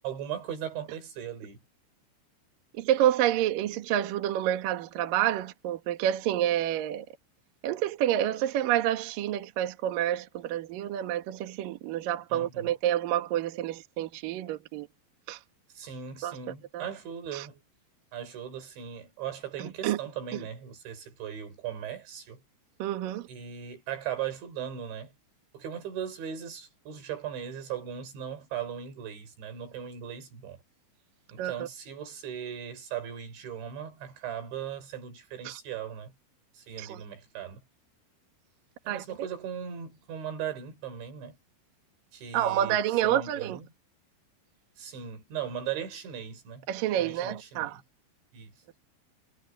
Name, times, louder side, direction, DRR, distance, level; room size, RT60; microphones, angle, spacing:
voice 1, 0.0-1.6 12.3-12.7 15.7-17.6 18.1-22.4 23.3-25.1 25.5-30.6 31.3-36.1 36.5-37.6 38.9-41.4 42.1-43.7 44.8-46.7 47.0-47.8 48.3-48.5, right 9 dB, 90° right, 7.1 m, -38 dB
voice 2, 2.7-7.1 7.6-14.9 15.3-15.4 16.2-16.4 16.7-16.9 17.3-17.5 19.6-20.0 20.3-20.4 22.8-23.3 31.4-31.7 35.4-35.6 36.8-37.0 38.9-39.3 42.3-43.6 46.7-47.8, right 12 dB, 60° right, 2.7 m, -28 dB
omnidirectional pair, 5.1 m